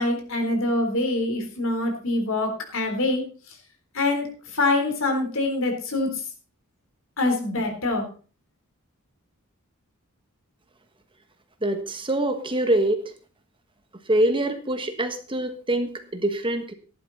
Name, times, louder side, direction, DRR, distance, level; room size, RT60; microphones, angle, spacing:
voice 1, 0.0-3.2 3.9-4.3 4.5-6.2 7.2-8.0, left 2 dB, 65° left, 3 dB, 3.8 m, -24 dB
voice 2, 11.6-13.0 14.1-16.7, right 1 dB, 25° right, 7 dB, 1.4 m, -24 dB
14.5 x 11.5 x 4.1 m, 0.37 s
head